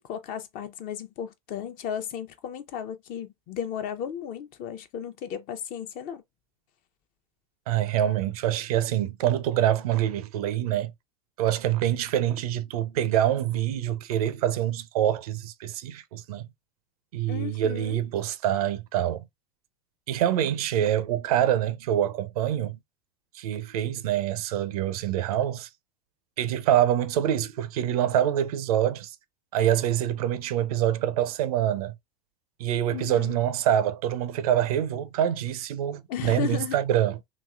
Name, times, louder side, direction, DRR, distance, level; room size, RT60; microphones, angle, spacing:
voice 1, 0.0-6.2 17.3-18.0 32.9-33.4 36.1-36.8, left 9 dB, 50° left, 0.7 m, -34 dB
voice 2, 7.7-10.9 11.4-16.5 17.1-19.2 20.1-22.8 23.3-25.7 26.4-29.2 29.5-31.9 32.6-37.2, right 11 dB, 70° right, 0.5 m, -25 dB
3.1 x 2.9 x 2.3 m
hypercardioid pair, 85°, 20 cm